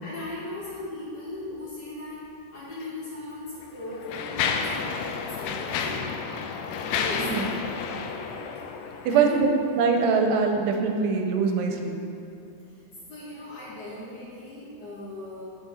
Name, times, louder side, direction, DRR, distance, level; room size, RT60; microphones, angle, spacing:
voice 1, 0.0-2.3 2.5-6.1 6.8-7.6 9.1-9.4 12.7-12.8 13.1-15.4, left 2 dB, 55° left, -9 dB, 2.7 m, -38 dB
Mechanisms, 2.7-2.9 3.6-9.4, left 6 dB, 90° left, 2.0 m, -31 dB
voice 2, 7.1-7.5 9.1-9.3 9.8-12.0, right 5 dB, 85° right, 3 dB, 2.7 m, -23 dB
9.3 x 6.2 x 4.2 m, 2.7 s
omnidirectional pair, 4.7 m